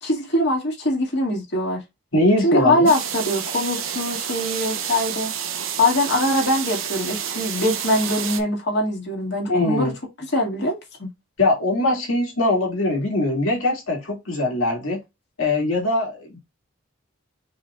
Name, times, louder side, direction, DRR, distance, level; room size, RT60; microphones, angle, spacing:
voice 1, 0.0-1.8 2.4-5.3 5.8-9.9 10.3-11.1, left 1 dB, 55° left, 2.0 m, -22 dB
voice 2, 2.1-2.9 9.5-9.9 11.4-15.0 15.4-16.4, left 2 dB, 80° left, 2.3 m, -21 dB
sound 1, 2.9-8.4, right 9 dB, 70° right, 0.7 m, -29 dB
4.9 x 3.9 x 2.4 m
head